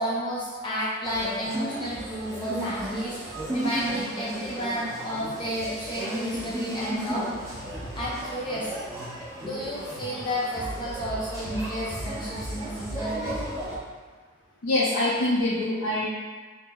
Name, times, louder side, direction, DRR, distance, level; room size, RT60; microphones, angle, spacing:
voice 1, 0.0-7.3 8.0-8.7 9.4-13.4, equal, 20° left, -7 dB, 0.5 m, -31 dB
sound 1, 1.0-13.8, right 1 dB, 15° right, 0.8 m, -35 dB
voice 2, 14.6-16.1, left 1 dB, 65° left, -6 dB, 0.5 m, -24 dB
4.4 x 2.0 x 4.2 m, 1.4 s
head